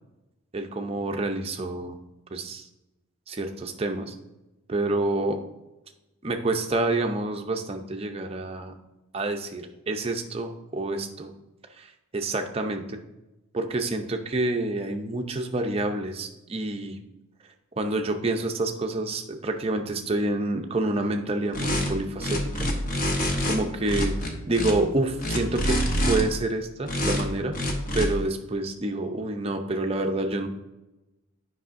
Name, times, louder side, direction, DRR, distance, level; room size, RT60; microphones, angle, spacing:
voice 1, 0.5-2.0 2.3-2.7 3.3-4.1 4.7-5.4 6.2-8.7 9.1-11.3 11.8-13.0 13.5-17.0 17.8-22.7 23.4-24.1 24.5-25.7 26.1-27.6 27.9-30.5, right 2 dB, 30° right, 5 dB, 0.5 m, -28 dB
sound 1, 21.5-21.9 22.2-23.6 23.9-24.7 25.2-26.2 26.9-27.2 27.5-28.1, equal, 40° left, 0.9 m, -26 dB
8.2 x 5.4 x 2.5 m, 1.0 s
head